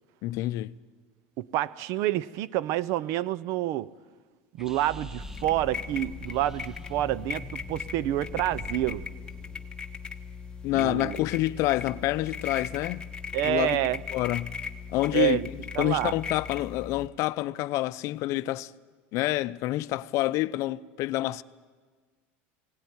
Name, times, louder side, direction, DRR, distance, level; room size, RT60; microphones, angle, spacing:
voice 1, 0.2-0.7 10.6-13.1 13.4-14.5 14.9-15.4 15.8-18.7 19.1-21.4, left 16 dB, 60° left, 0.6 m, -28 dB
voice 2, 1.4-3.9 4.5-9.0 10.7-11.1 13.3-14.0 15.1-15.5 15.7-16.1, right 14 dB, 60° right, 0.6 m, -28 dB
sound 1, 4.6-9.7, right 1 dB, 5° right, 0.9 m, -45 dB
sound 2, 5.2-17.1, left 6 dB, 15° left, 1.2 m, -38 dB
17.5 x 17.0 x 9.7 m
supercardioid pair, 110°, 6 cm